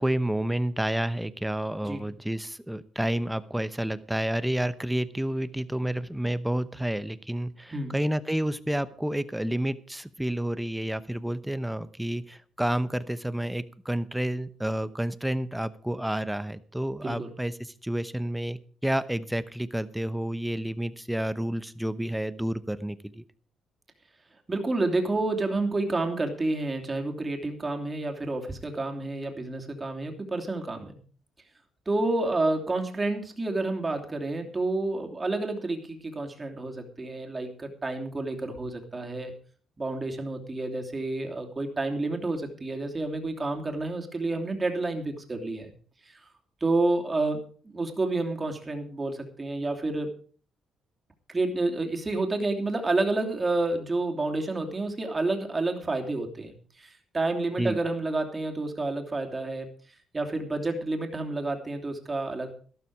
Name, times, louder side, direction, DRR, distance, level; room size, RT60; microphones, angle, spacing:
voice 1, 0.0-23.2 57.6-57.8, right 1 dB, 5° right, 14 dB, 0.9 m, -30 dB
voice 2, 24.5-31.0 31.9-39.3 39.8-45.7 46.6-50.1 51.3-59.7 60.1-62.5, right 2 dB, 25° right, 3 dB, 3.0 m, -29 dB
12.5 x 12.5 x 4.8 m, 0.43 s
cardioid pair, 90°, 0 cm